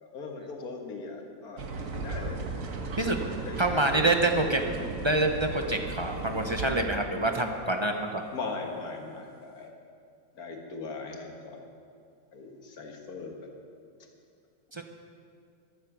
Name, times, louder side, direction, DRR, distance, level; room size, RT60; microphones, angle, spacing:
voice 1, 0.0-1.6 1.9-2.4 3.0-4.1 4.4-4.6 8.3-9.7 10.4-11.6 12.3-13.5, left 4 dB, 75° left, 2 dB, 2.1 m, -39 dB
sound 1, 1.6-6.7, right 3 dB, 60° right, 1.6 m, -36 dB
voice 2, 3.6-8.2 14.7-14.8, right 2 dB, 25° right, 4 dB, 0.7 m, -27 dB
14.5 x 12.0 x 6.2 m, 2.4 s
omnidirectional pair, 1.6 m